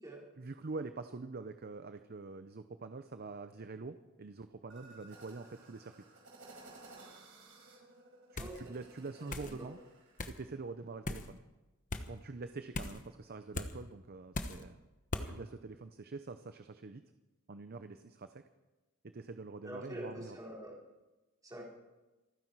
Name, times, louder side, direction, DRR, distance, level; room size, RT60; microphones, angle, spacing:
voice 1, 0.4-5.9 8.3-9.8 10.3-11.4 12.1-14.9 15.2-17.0 17.5-18.4 19.0-20.4, right 3 dB, 45° right, 9 dB, 0.7 m, -45 dB
sound 1, 4.7-10.3, right 2 dB, 65° right, 5.4 m, -57 dB
voice 2, 8.3-8.8 9.2-9.7 19.6-20.7 21.4-21.7, right 1 dB, 15° right, -4 dB, 4.6 m, -45 dB
sound 2, 8.4-8.6 9.3-9.5 10.2-10.4 11.0-11.3 11.9-12.1 12.7-13.0 13.5-13.7 14.3-14.6 15.1-15.3, left 2 dB, 40° left, 1.1 m, -38 dB
28.0 x 9.8 x 4.7 m, 1.1 s
head